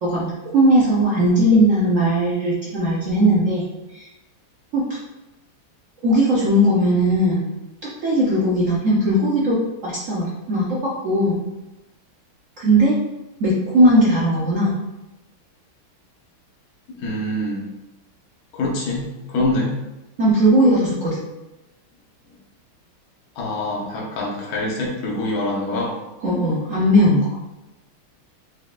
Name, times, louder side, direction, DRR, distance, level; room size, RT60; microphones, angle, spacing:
voice 1, 0.0-3.6 3.9-4.1 4.7-4.8 6.0-7.5 8.0-11.4 12.6-13.0 13.4-14.7 20.2-21.2 26.2-27.4, equal, 65° right, -6 dB, 0.7 m, -18 dB
voice 2, 17.0-17.7 18.5-19.7 23.4-25.9, left 1 dB, 55° left, -3 dB, 1.3 m, -25 dB
4.7 x 4.0 x 2.4 m, 1.0 s
omnidirectional pair, 2.3 m